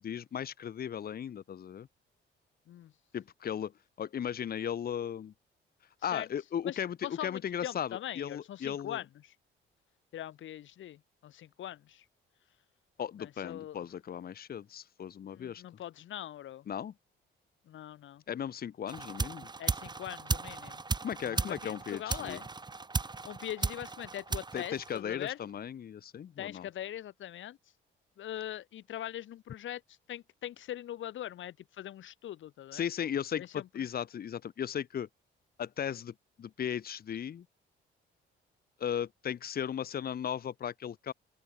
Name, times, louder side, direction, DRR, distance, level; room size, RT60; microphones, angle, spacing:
voice 1, 0.0-1.9 3.1-3.7 4.0-5.3 6.0-9.0 13.0-15.6 16.7-16.9 18.3-19.5 21.0-22.4 24.5-26.7 32.7-35.1 35.6-37.4 38.8-41.1, left 9 dB, 50° left, 1.2 m, -36 dB
voice 2, 6.6-9.1 10.1-12.0 13.2-13.8 15.3-16.7 17.7-18.2 19.6-20.8 21.2-22.5 23.2-25.4 26.4-27.6 28.2-32.8 33.4-33.7, left 12 dB, 75° left, 5.8 m, -42 dB
sound 1, 18.9-25.4, right 3 dB, 20° right, 1.3 m, -36 dB
open air
cardioid pair, 90°, 20 cm